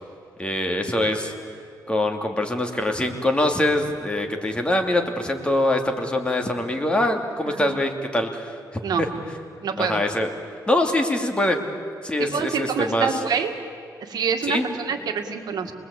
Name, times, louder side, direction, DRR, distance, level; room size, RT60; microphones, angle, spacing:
voice 1, 0.4-1.3 1.9-8.6 9.0-9.1 9.8-10.3 10.7-11.6 12.0-13.1 14.4-14.7, left 1 dB, 15° left, 3 dB, 2.7 m, -23 dB
voice 2, 9.6-10.0 12.2-13.6 14.0-15.7, right 6 dB, 70° right, 6 dB, 2.0 m, -26 dB
28.5 x 21.0 x 8.5 m, 2.4 s
cardioid pair, 105°, 7 cm